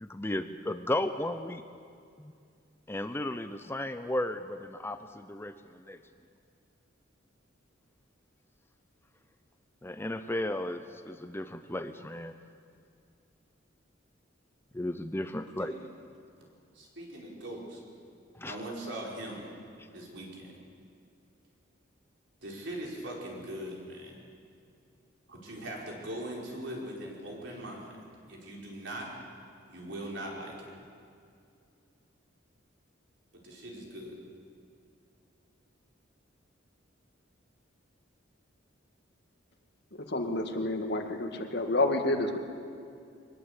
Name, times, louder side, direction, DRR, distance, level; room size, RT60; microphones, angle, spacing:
voice 1, 0.0-1.6 2.9-6.0 9.8-12.3 14.8-15.7 18.4-18.5, left 1 dB, 10° left, 9 dB, 0.6 m, -34 dB
voice 2, 17.0-17.6 18.4-19.4 19.9-20.3 22.4-24.1 25.3-27.9 28.3-29.1 29.7-30.5 33.3-34.2, right 1 dB, 65° right, -2 dB, 5.1 m, -40 dB
voice 3, 40.1-42.4, left 2 dB, 60° left, 5 dB, 2.0 m, -29 dB
23.5 x 20.0 x 8.3 m, 2.4 s
head